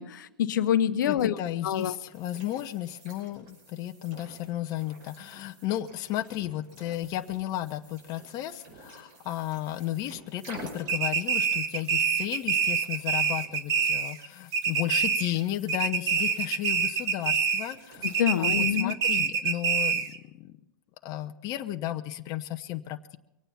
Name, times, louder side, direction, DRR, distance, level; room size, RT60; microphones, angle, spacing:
voice 1, 0.0-1.4 1.6-1.9 18.0-19.0, left 10 dB, 60° left, 13 dB, 0.9 m, -26 dB
voice 2, 1.1-20.6 21.0-23.2, left 13 dB, 35° left, 7 dB, 0.8 m, -34 dB
sound 1, 1.7-18.8, right 2 dB, 45° right, 5.4 m, -51 dB
sound 2, 10.9-14.3 14.5-15.4 15.7-17.7 18.0-20.2, right 6 dB, 30° right, 1.4 m, -26 dB
23.5 x 9.1 x 5.7 m, 0.91 s
hypercardioid pair, 125°, 11 cm